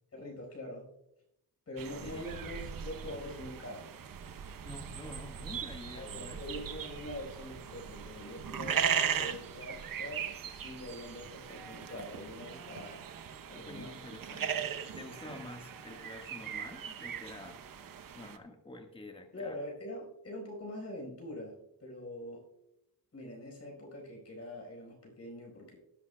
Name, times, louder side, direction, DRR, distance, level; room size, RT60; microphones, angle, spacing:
voice 1, 0.1-0.9 1.7-3.9 5.9-13.0 13.5-14.0 15.2-15.4 19.3-22.5 23.1-25.8, left 1 dB, 40° left, 0 dB, 4.8 m, -44 dB
sound 1, 1.8-18.4, right 8 dB, 55° right, 0.9 m, -38 dB
voice 2, 4.6-6.6 13.6-14.7 14.9-17.6 18.1-19.6, left 1 dB, 15° left, 3 dB, 1.6 m, -48 dB
18.5 x 11.0 x 2.3 m, 0.82 s
wide cardioid pair, 120°, 39 cm